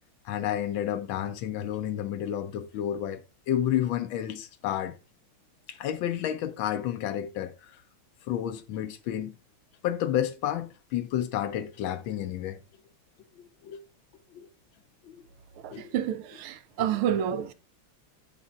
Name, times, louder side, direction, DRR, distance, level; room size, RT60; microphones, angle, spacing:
voice 1, 0.2-5.0 5.7-7.8 8.2-9.3 9.8-12.6 13.3-13.8 14.3-14.5 15.0-15.2 15.7-15.9 16.8-16.9 17.1-17.2, left 11 dB, 75° left, 1.3 m, -31 dB
voice 2, 15.6-17.5, right 9 dB, 85° right, 1.5 m, -29 dB
8.3 x 7.5 x 2.4 m
omnidirectional pair, 2.4 m